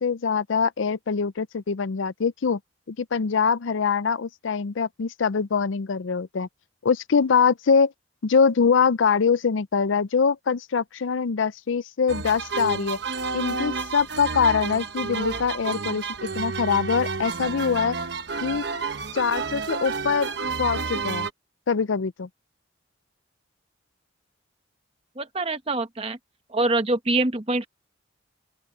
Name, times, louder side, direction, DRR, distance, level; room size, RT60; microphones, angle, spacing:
voice 1, 0.0-2.6 2.9-6.5 6.8-7.9 8.2-13.0 13.3-16.1 16.3-18.0 18.4-18.6 19.1-20.3 20.6-21.3 21.7-22.3, left 5 dB, 80° left, 0.5 m, -23 dB
sound 1, 12.1-21.3, right 4 dB, 60° right, 1.2 m, -30 dB
voice 2, 25.2-26.2 26.5-27.7, right 2 dB, 30° right, 1.2 m, -24 dB
open air
head